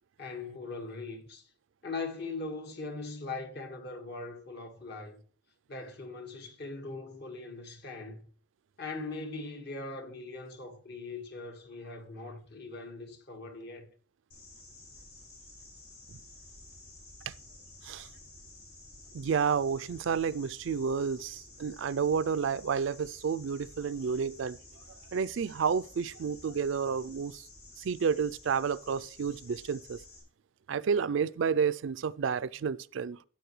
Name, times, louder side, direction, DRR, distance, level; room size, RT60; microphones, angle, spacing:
voice 1, 0.2-1.5 1.8-5.2 5.7-8.2 8.8-13.9, left 3 dB, 55° left, 1.7 m, -40 dB
sound 1, 14.3-30.2, left 2 dB, 85° left, 4.8 m, -52 dB
voice 2, 19.1-24.6 25.1-27.4 27.8-30.0 30.7-33.2, right 6 dB, 65° right, 0.4 m, -30 dB
13.5 x 8.6 x 3.2 m
head